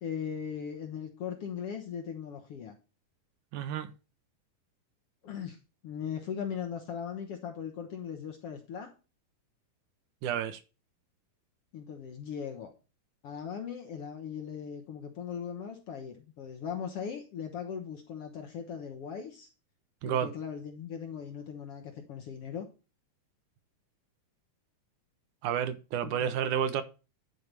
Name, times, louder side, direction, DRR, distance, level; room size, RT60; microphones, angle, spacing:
voice 1, 0.0-2.7 5.2-5.6 5.8-8.9 11.7-12.7 13.2-19.5 20.0-22.7 26.0-26.3, left 7 dB, 60° left, 1.7 m, -39 dB
voice 2, 3.5-3.9 10.2-10.6 20.0-20.3 25.4-26.8, right 9 dB, 75° right, 2.2 m, -30 dB
11.0 x 4.7 x 6.7 m
omnidirectional pair, 3.8 m